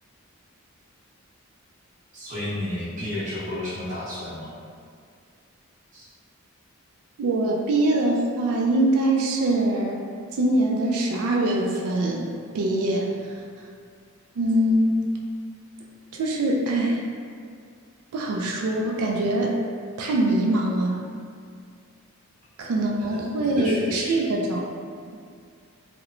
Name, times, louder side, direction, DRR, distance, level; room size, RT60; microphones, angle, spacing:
voice 1, 2.1-4.5 5.9-6.0 23.1-23.2 23.5-24.2, left 1 dB, 35° right, -10 dB, 0.7 m, -32 dB
voice 2, 7.2-10.0 10.3-12.3 12.5-13.7 14.4-15.0 16.1-17.0 18.1-19.6 20.0-21.0 22.6-24.6, right 1 dB, 85° right, -1 dB, 0.3 m, -23 dB
2.9 x 2.1 x 2.4 m, 2.2 s
head